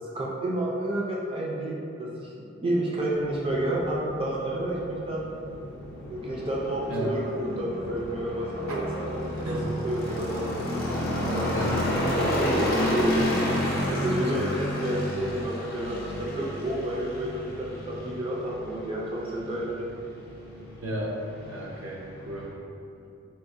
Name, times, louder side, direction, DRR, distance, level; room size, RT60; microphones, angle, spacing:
voice 1, 0.1-2.3 2.6-5.2 6.1-9.5 9.8-10.5 11.2-11.6 12.7-13.1 13.9-17.3 17.6-19.9, right 1 dB, 25° right, -5 dB, 0.3 m, -30 dB
sound 1, 3.1-22.5, equal, 45° left, 0.6 m, -31 dB
voice 2, 6.9-7.2 8.7-8.9 9.3-9.7 11.5-11.8 12.2-12.6 20.8-21.2 21.5-22.5, right 1 dB, 85° right, -2 dB, 0.6 m, -34 dB
4.4 x 2.1 x 2.5 m, 2.6 s
head